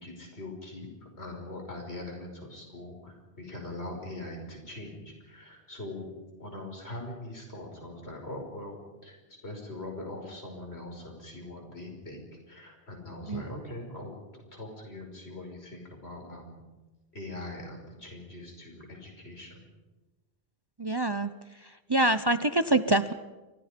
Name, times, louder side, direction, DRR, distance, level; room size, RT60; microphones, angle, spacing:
voice 1, 0.0-6.1 6.4-8.8 9.0-9.2 9.4-16.6 17.1-19.6, left 1 dB, 85° left, 2 dB, 6.1 m, -42 dB
voice 2, 20.8-21.3 21.9-23.1, right 2 dB, 25° right, 11 dB, 0.7 m, -25 dB
30.0 x 24.5 x 5.2 m, 1.2 s
omnidirectional pair, 1.1 m